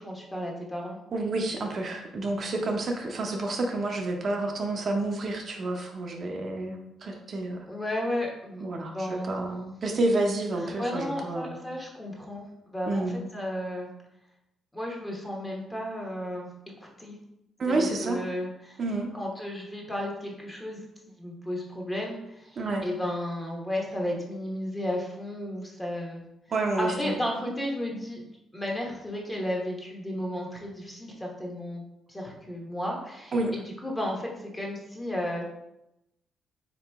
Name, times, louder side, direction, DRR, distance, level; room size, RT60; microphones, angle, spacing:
voice 1, 0.0-1.0 7.7-8.6 8.9-9.7 10.6-12.5 12.7-13.1 13.3-13.9 14.7-16.5 17.0-17.2 17.7-18.8 19.1-20.8 21.2-26.2 26.8-31.8 32.1-35.4, left 1 dB, 15° left, -1 dB, 1.0 m, -33 dB
voice 2, 1.1-7.6 8.6-11.5 12.9-13.2 17.6-18.2 18.8-19.1 22.6-22.8 26.5-27.1 33.3-33.5, right 2 dB, 50° right, 1 dB, 0.5 m, -29 dB
3.7 x 2.9 x 3.4 m, 0.87 s
cardioid pair, 90°, 0 cm